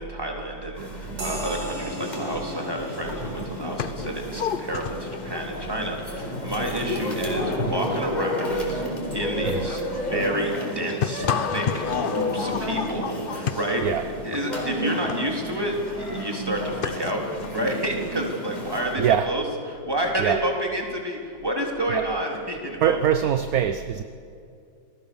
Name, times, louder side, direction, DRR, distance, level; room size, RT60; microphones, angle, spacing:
voice 1, 0.0-8.8 9.1-13.8 14.2-17.2 17.5-19.4 19.7-23.0, right 1 dB, 10° right, 0 dB, 3.5 m, -29 dB
sound 1, 0.7-19.0, equal, 20° left, 4.6 m, -32 dB
sound 2, 1.2-9.1, right 1 dB, 85° right, 6.4 m, -42 dB
sound 3, 2.8-2.9 3.0-18.1, left 7 dB, 85° left, 0.4 m, -33 dB
voice 2, 19.0-19.3 20.2-20.4 21.9-22.1 22.8-24.0, right 9 dB, 60° right, 10 dB, 1.2 m, -23 dB
28.5 x 20.0 x 7.1 m, 2.4 s
omnidirectional pair, 2.0 m